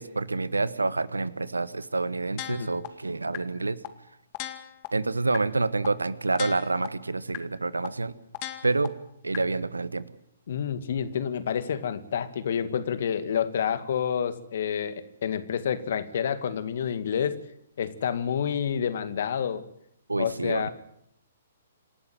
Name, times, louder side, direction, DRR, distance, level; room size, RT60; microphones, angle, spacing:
voice 1, 0.0-3.8 4.9-8.1 8.6-8.9 9.2-10.1 20.1-20.7, right 3 dB, 85° right, 17 dB, 1.3 m, -28 dB
sound 1, 2.4-2.9 3.3-3.4 3.8-3.9 4.3-4.9 5.3-5.4 5.8-5.9 6.3-6.9 7.3-7.4 7.8-7.9 8.3-8.9 9.3-9.4, left 15 dB, 35° left, 2.1 m, -35 dB
voice 2, 10.5-17.4 17.8-19.6 20.2-20.7, left 8 dB, 55° left, 12 dB, 2.1 m, -29 dB
27.5 x 12.0 x 9.3 m, 0.73 s
figure-of-eight pair, 125°, 0 cm